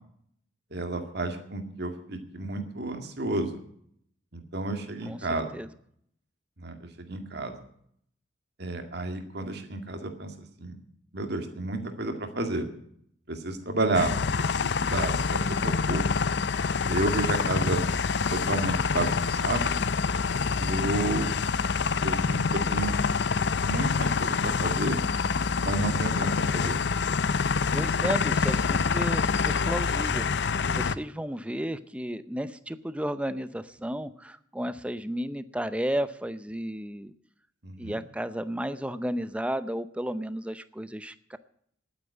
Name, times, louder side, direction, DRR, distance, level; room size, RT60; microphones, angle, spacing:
voice 1, 0.7-3.6 4.3-5.5 6.6-7.5 8.6-10.8 11.1-12.7 13.3-16.1 16.9-17.8 18.3-19.8 20.6-21.4 22.0-22.9 23.6-25.0 25.6-26.8 27.7-28.1 37.6-38.0, right 2 dB, 55° right, 6 dB, 2.1 m, -31 dB
sound 1, 13.9-30.9, left 5 dB, 55° left, 0.5 m, -26 dB
voice 2, 27.7-37.1 37.8-41.4, equal, 5° right, 13 dB, 0.6 m, -33 dB
11.5 x 9.4 x 9.6 m, 0.66 s
head